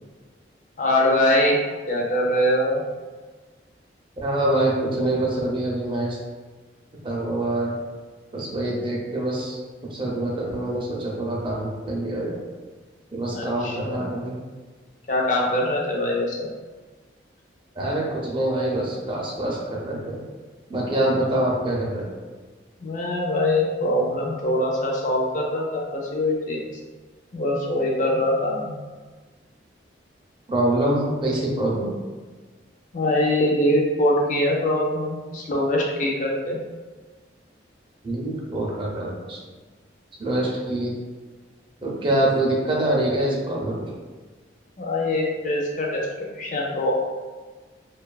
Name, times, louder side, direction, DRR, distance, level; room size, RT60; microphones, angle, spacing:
voice 1, 0.8-1.6 1.9-2.8 13.3-14.1 15.1-16.5 21.1-21.2 22.8-26.6 27.3-28.7 32.9-36.6 44.8-46.9, left 1 dB, 45° left, -2 dB, 0.4 m, -23 dB
voice 2, 4.2-6.2 7.0-7.8 8.3-9.6 9.9-12.4 13.1-14.4 17.8-20.2 20.7-22.1 30.5-31.9 38.0-39.4 40.2-40.9 41.8-43.9, right 1 dB, 25° right, -3 dB, 0.4 m, -25 dB
2.5 x 2.3 x 2.2 m, 1.4 s
head